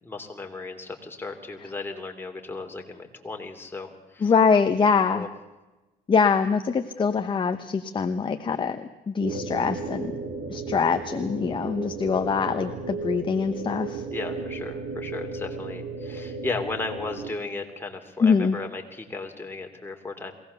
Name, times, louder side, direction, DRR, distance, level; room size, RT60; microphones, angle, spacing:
voice 1, 0.0-4.3 4.9-5.3 14.1-20.3, left 3 dB, 15° left, 3 dB, 3.0 m, -35 dB
voice 2, 4.2-5.3 6.1-10.1 10.5-14.0 18.2-18.6, left 5 dB, 30° left, 7 dB, 1.0 m, -23 dB
sound 1, 9.2-17.4, right 4 dB, 60° right, 3.1 m, -34 dB
22.5 x 17.5 x 7.0 m, 1.1 s
cardioid pair, 110°, 17 cm